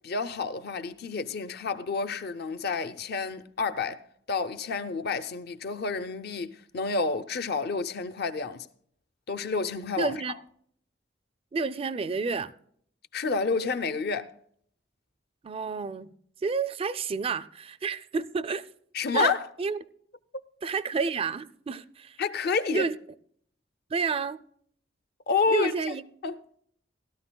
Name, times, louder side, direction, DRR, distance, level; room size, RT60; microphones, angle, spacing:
voice 1, 0.0-8.7 9.3-10.4 13.1-14.3 18.9-19.5 22.2-22.9 25.3-26.4, left 4 dB, 55° left, 0.6 m, -29 dB
voice 2, 10.0-10.3 11.5-12.5 15.4-16.1 16.4-18.7 19.1-19.3 19.6-19.8 20.6-22.2 22.7-22.9 23.9-24.4 25.5-26.0, right 4 dB, 30° right, 0.4 m, -30 dB
17.0 x 12.5 x 2.2 m
head